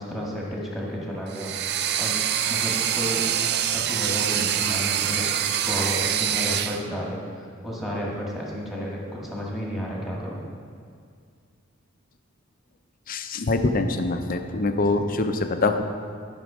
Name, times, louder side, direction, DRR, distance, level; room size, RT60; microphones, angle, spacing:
voice 1, 0.0-1.5 2.0-2.2 2.5-3.3 3.7-5.3 5.7-10.4, equal, ahead, -4 dB, 1.7 m, -32 dB
sound 1, 1.3-6.8, right 10 dB, 50° right, 0.4 m, -25 dB
voice 2, 13.1-15.8, left 3 dB, 40° left, 7 dB, 0.6 m, -24 dB
11.5 x 6.1 x 5.0 m, 2.2 s
head